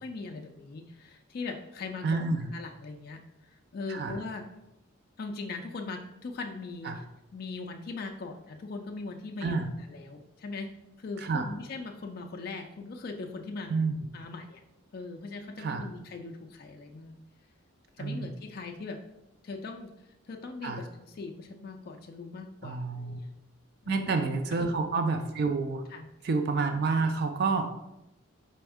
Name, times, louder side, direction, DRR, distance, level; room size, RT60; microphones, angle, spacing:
voice 1, 0.0-2.3 2.5-4.5 5.2-7.0 7.3-9.6 9.9-10.7 11.0-13.7 14.1-14.6 14.9-17.2 18.0-19.0 19.4-19.9 20.3-23.3 23.8-24.1 25.9-26.1, left 3 dB, 45° left, 3 dB, 0.3 m, -40 dB
voice 2, 2.0-2.5 3.9-4.2 6.8-7.0 9.4-9.7 11.2-11.5 13.7-14.0 15.6-15.9 18.0-18.3 20.6-20.8 22.6-23.2 23.9-25.8 26.2-27.7, right 4 dB, 45° right, 6 dB, 0.3 m, -29 dB
4.2 x 3.4 x 3.5 m, 0.91 s
head